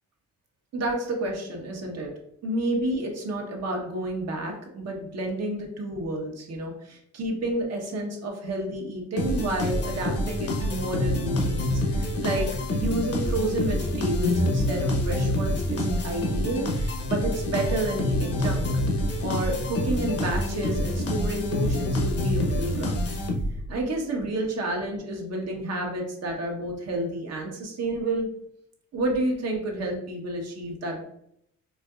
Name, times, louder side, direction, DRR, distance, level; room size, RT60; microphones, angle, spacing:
voice 1, 0.7-2.1 2.4-18.8 19.2-23.0 23.7-28.3 28.9-31.0, right 1 dB, 55° right, 1 dB, 1.1 m, -30 dB
sound 1, 9.2-23.7, left 1 dB, 50° left, 0.8 m, -27 dB
4.4 x 2.7 x 2.4 m, 0.73 s
cardioid pair, 90°, 30 cm